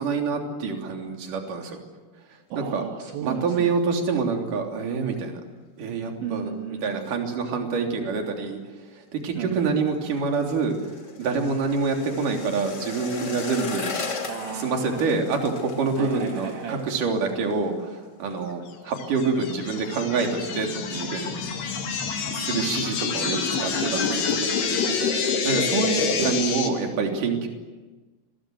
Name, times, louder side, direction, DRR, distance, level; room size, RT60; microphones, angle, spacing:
voice 1, 0.0-1.8 2.6-2.8 3.2-5.4 5.8-6.5 6.8-8.6 8.9-10.8 11.2-13.9 14.5-21.3 22.3-23.4 23.8-24.4 25.4-27.5, right 4 dB, 45° right, 2 dB, 4.4 m, -26 dB
voice 2, 2.5-3.8 6.2-7.1 9.4-9.9 14.3-15.2 16.0-16.8 23.5-25.7, right 7 dB, 70° right, 3 dB, 3.8 m, -35 dB
sound 1, 9.4-18.5 18.7-19.1 19.4-19.9 20.2-20.3, left 4 dB, 40° left, 1.6 m, -37 dB
sound 2, 19.0-26.7, left 5 dB, 55° left, 4.4 m, -27 dB
30.0 x 23.0 x 7.9 m, 1.2 s
omnidirectional pair, 5.7 m